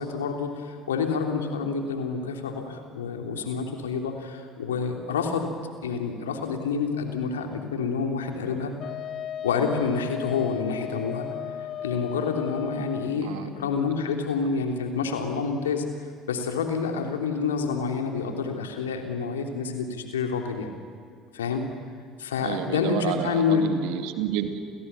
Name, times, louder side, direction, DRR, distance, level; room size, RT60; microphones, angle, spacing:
voice 1, 0.0-5.5 5.8-8.7 9.4-11.3 11.8-15.8 16.3-20.7 21.3-21.6 22.2-23.7, left 5 dB, 75° left, 4 dB, 3.1 m, -28 dB
Wind instrument woodwind instrument, 8.8-13.2, left 10 dB, 45° left, 1.4 m, -35 dB
voice 2, 22.4-24.6, right 10 dB, 60° right, 7 dB, 2.4 m, -30 dB
29.5 x 29.0 x 7.0 m, 2.2 s
figure-of-eight pair, 60°, 0 cm